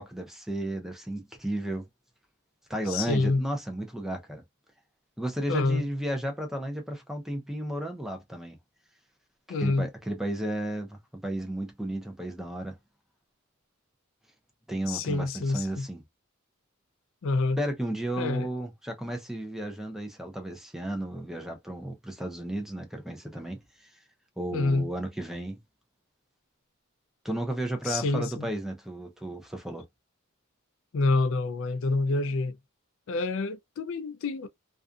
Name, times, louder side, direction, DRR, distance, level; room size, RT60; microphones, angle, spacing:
voice 1, 0.0-1.8 2.7-4.4 5.2-8.6 9.6-12.8 14.7-16.0 17.6-23.6 24.4-25.6 27.2-29.8, right 1 dB, ahead, 0.6 m, -33 dB
voice 2, 2.9-3.4 5.5-5.8 9.5-9.9 14.9-15.9 17.2-17.6 18.2-18.5 24.5-24.9 27.9-28.5 30.9-32.6 33.1-34.5, left 3 dB, 65° left, 0.4 m, -27 dB
2.5 x 2.4 x 2.3 m
head